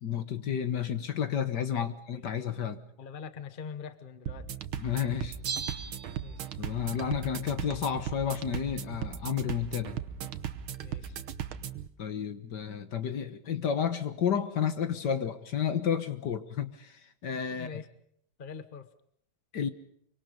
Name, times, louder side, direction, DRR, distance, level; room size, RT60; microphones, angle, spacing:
voice 1, 0.0-2.8 4.8-5.4 6.6-10.0 12.0-17.8 19.5-19.7, left 8 dB, 60° left, 11 dB, 1.8 m, -31 dB
voice 2, 1.7-2.3 3.0-4.5 4.8-4.9 6.2-6.5 10.8-11.2 17.5-17.9 18.4-18.9, left 6 dB, 30° left, 12 dB, 1.2 m, -44 dB
sound 1, 4.3-11.9, right 9 dB, 85° right, 1.9 m, -38 dB
Bell, 5.5-6.9 7.1-7.2, right 6 dB, 60° right, 2.0 m, -38 dB
25.5 x 24.5 x 5.3 m, 0.66 s
omnidirectional pair, 2.2 m